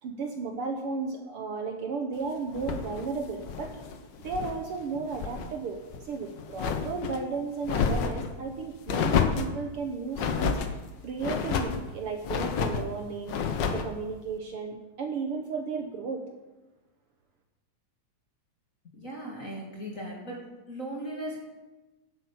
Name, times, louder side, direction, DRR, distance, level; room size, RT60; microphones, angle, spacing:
voice 1, 0.0-3.8 4.2-5.8 6.0-10.8 11.0-13.4 13.7-16.2, right 4 dB, 60° right, 4 dB, 1.5 m, -34 dB
sound 1, 2.5-4.6 4.9-5.5 5.9-7.2 7.6-8.3 8.9-9.6 10.1-10.7 11.2-11.8 12.2-12.9 13.3-13.9, left 6 dB, 85° left, 0.9 m, -29 dB
voice 2, 18.8-20.4 20.7-21.4, right 1 dB, 30° left, -3 dB, 2.4 m, -37 dB
11.0 x 8.3 x 8.5 m, 1.1 s
omnidirectional pair, 3.4 m